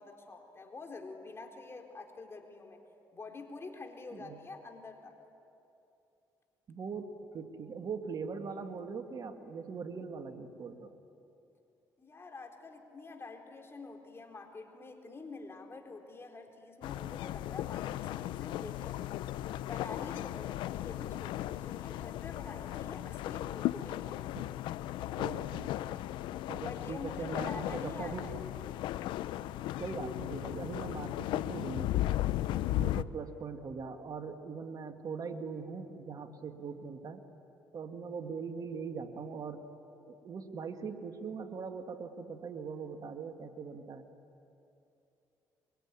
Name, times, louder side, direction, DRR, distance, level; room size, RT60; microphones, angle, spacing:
voice 1, 0.0-2.8 3.1-5.1 12.0-19.2 19.5-24.2 26.6-28.4, left 3 dB, 30° left, 3 dB, 4.1 m, -47 dB
voice 2, 6.7-10.9 24.4-24.5 25.2-25.8 26.5-28.3 29.8-32.0 32.7-37.2 37.7-39.6 40.1-44.1, right 5 dB, 50° right, 6 dB, 1.9 m, -41 dB
sound 1, 16.8-33.0, left 14 dB, 80° left, 0.6 m, -36 dB
24.5 x 24.5 x 9.9 m, 2.8 s
supercardioid pair, 75°, 8 cm